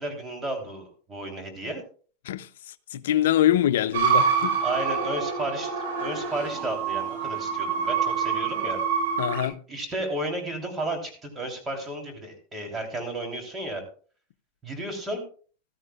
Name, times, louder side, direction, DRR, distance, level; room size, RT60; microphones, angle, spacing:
voice 1, 0.0-1.8 4.6-5.7 6.0-8.8 9.7-13.8 14.6-15.2, right 1 dB, 20° right, 3.2 m, -33 dB
voice 2, 2.2-4.6 9.2-9.6, left 12 dB, 85° left, 0.5 m, -24 dB
sound 1, 3.9-9.5, right 6 dB, 90° right, 5.1 m, -26 dB
15.0 x 13.0 x 2.3 m
supercardioid pair, 125°, 0 cm